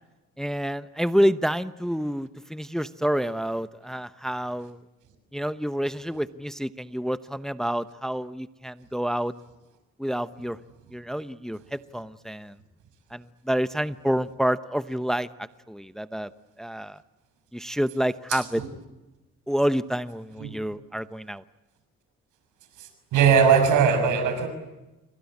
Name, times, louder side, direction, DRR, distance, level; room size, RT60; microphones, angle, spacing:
voice 1, 0.4-4.8 5.3-9.3 10.0-10.6 10.9-12.6 13.1-16.3 16.6-17.0 17.5-18.6 19.5-21.4, equal, ahead, 13 dB, 0.9 m, -28 dB
voice 2, 18.3-18.7 20.4-20.5 22.8-24.5, right 7 dB, 90° right, 8 dB, 6.4 m, -20 dB
28.5 x 24.0 x 8.6 m, 1.0 s
cardioid pair, 90°, 30 cm